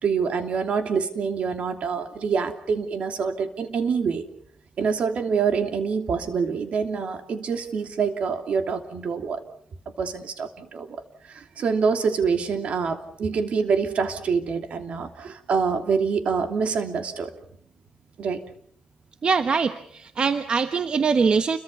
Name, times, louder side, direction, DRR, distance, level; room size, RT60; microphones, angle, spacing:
voice 1, 0.0-4.2 4.8-9.4 10.0-11.0 11.3-17.3 18.2-18.4, right 5 dB, 70° right, 6 dB, 2.9 m, -26 dB
voice 2, 19.2-21.6, right 5 dB, 50° right, 9 dB, 1.1 m, -22 dB
29.5 x 23.0 x 5.5 m, 0.65 s
cardioid pair, 100°, 2 cm